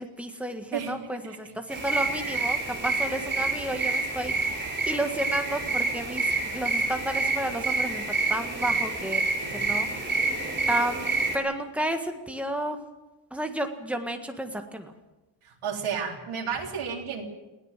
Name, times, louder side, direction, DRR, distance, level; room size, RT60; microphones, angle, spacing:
voice 1, 0.0-10.3 10.7-11.1 11.3-12.8 13.3-14.9, right 1 dB, 5° right, 4 dB, 1.7 m, -32 dB
voice 2, 0.7-1.4 9.4-9.7 15.4-17.2, right 6 dB, 80° right, 1 dB, 3.8 m, -33 dB
sound 1, 1.7-11.4, right 3 dB, 20° right, 4.1 m, -28 dB
21.0 x 17.5 x 7.5 m, 1.1 s
wide cardioid pair, 175°, 49 cm